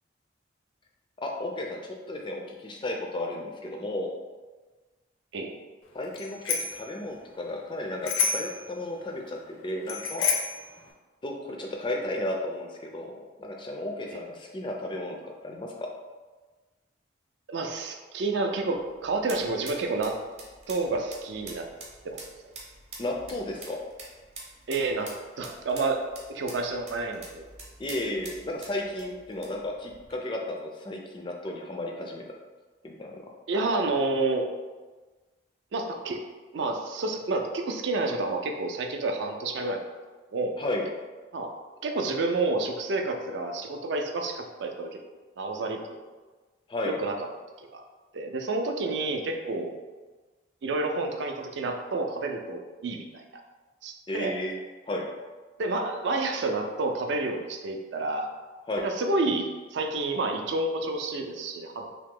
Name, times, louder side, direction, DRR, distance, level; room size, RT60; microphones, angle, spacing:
voice 1, 1.2-4.1 5.9-10.3 11.2-13.1 13.4-15.7 23.0-23.8 27.8-32.4 32.8-33.2 40.6-40.9 46.7-47.0 54.1-54.6 54.9-55.1 58.7-58.9, left 1 dB, 25° left, 1 dB, 0.3 m, -33 dB
Bicycle bell, 6.1-6.8 8.0-8.6 9.9-10.6, left 5 dB, 80° left, 0.5 m, -28 dB
voice 2, 17.5-20.1 20.7-21.7 22.0-22.3 24.7-25.1 25.4-27.5 33.5-34.5 35.7-36.2 36.5-39.8 40.3-40.5 41.3-41.5 41.8-45.0 45.4-46.0 46.9-47.1 47.6-47.8 48.1-49.8 50.6-53.2 53.8-54.4 55.6-58.3 58.8-61.9, right 3 dB, 60° right, 3 dB, 0.4 m, -29 dB
sound 1, 18.5-30.2, right 2 dB, 35° right, 0.7 m, -47 dB
2.9 x 2.7 x 3.6 m, 1.3 s
head